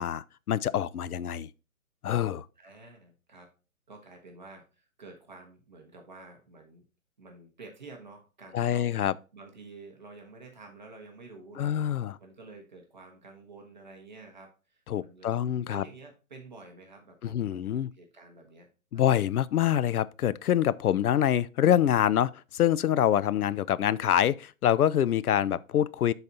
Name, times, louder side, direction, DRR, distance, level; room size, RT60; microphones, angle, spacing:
voice 1, 0.0-1.5 2.0-2.4 8.5-9.1 11.6-12.1 14.9-15.8 17.3-17.9 18.9-26.1, left 10 dB, 90° left, 0.6 m, -25 dB
voice 2, 2.6-3.5 3.9-6.8 7.2-9.0 9.3-15.4 15.7-17.6 17.9-18.7 18.9-19.2, right 3 dB, 30° right, 1.1 m, -50 dB
12.0 x 4.1 x 2.8 m
hypercardioid pair, 175°, 43 cm